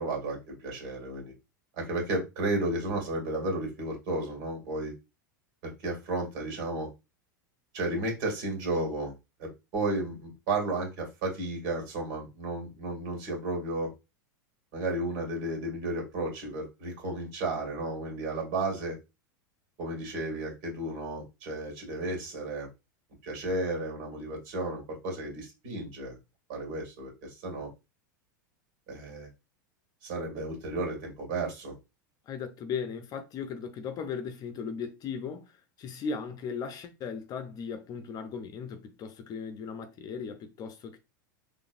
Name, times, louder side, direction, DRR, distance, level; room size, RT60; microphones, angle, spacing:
voice 1, 0.0-1.3 1.8-4.9 5.6-6.9 7.7-9.1 9.4-13.9 14.7-19.0 19.8-22.7 23.2-26.2 26.5-27.7 28.9-29.3 30.0-31.7, right 2 dB, 60° right, 2.2 m, -33 dB
voice 2, 32.3-41.0, left 6 dB, 35° left, 0.7 m, -37 dB
3.9 x 3.2 x 2.5 m
hypercardioid pair, 100°, 11 cm